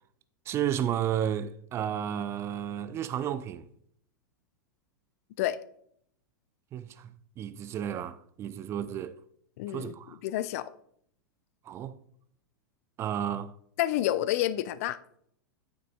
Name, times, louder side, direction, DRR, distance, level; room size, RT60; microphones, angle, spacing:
voice 1, 0.5-3.7 6.7-9.2 9.7-10.2 11.7-12.0 13.0-13.5, right 10 dB, 25° right, 0.4 m, -32 dB
voice 2, 9.6-9.9 10.2-10.7 13.8-15.0, left 13 dB, 45° left, 0.4 m, -29 dB
9.0 x 7.5 x 2.3 m
figure-of-eight pair, 95°, 11 cm